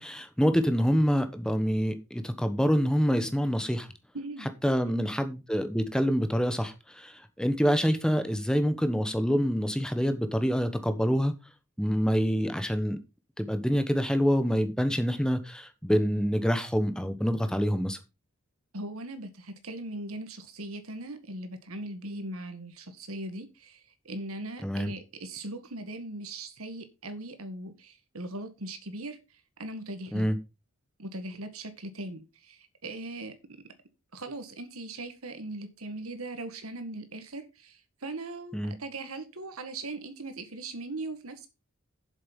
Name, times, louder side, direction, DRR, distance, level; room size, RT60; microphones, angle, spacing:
voice 1, 0.0-3.9 4.6-11.3 11.8-13.0 13.4-18.0 24.6-24.9 30.1-30.4 38.5-38.7, equal, 5° left, 1.1 m, -26 dB
voice 2, 4.1-4.5 4.8-5.0 18.7-29.2 29.6-30.3 31.0-33.3 34.1-41.5, right 2 dB, 80° right, 1.9 m, -39 dB
7.8 x 7.3 x 5.4 m
head